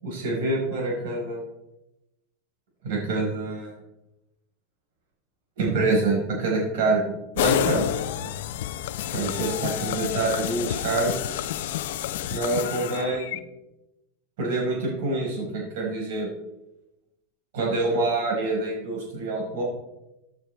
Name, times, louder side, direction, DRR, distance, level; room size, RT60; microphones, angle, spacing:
voice 1, 0.0-1.4 2.8-3.7 5.6-8.4 9.1-11.1 12.3-13.4 14.4-16.3 17.5-19.6, right 2 dB, 60° right, -3 dB, 4.8 m, -26 dB
sound 1, 7.4-13.4, left 11 dB, 65° left, 0.6 m, -29 dB
15.5 x 9.0 x 3.5 m, 0.93 s
supercardioid pair, 180°, 0 cm